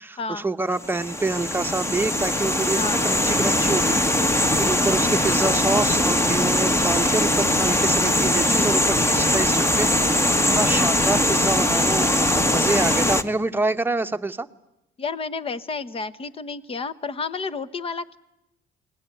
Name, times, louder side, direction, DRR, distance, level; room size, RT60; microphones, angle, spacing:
voice 1, 0.0-14.5, right 3 dB, 10° right, 8 dB, 1.1 m, -27 dB
sound 1, 0.8-13.2, left 1 dB, 15° left, 1.5 m, -21 dB
voice 2, 2.7-3.1 15.0-18.2, left 4 dB, 35° left, 15 dB, 1.2 m, -31 dB
28.0 x 20.5 x 9.7 m, 0.89 s
cardioid pair, 110°, 17 cm